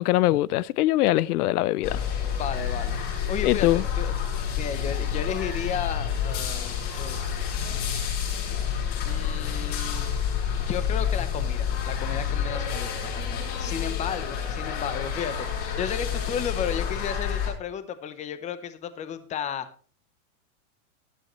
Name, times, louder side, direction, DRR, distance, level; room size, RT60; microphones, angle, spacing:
voice 1, 0.0-2.0 3.4-3.8, left 16 dB, 85° left, 0.6 m, -22 dB
sound 1, 1.8-17.5, left 8 dB, 45° left, 6.2 m, -29 dB
voice 2, 2.4-3.0 3.3-4.2 4.6-7.4 9.0-10.1 10.7-19.7, left 8 dB, 15° left, 0.8 m, -33 dB
14.5 x 12.0 x 3.1 m
supercardioid pair, 155°, 44 cm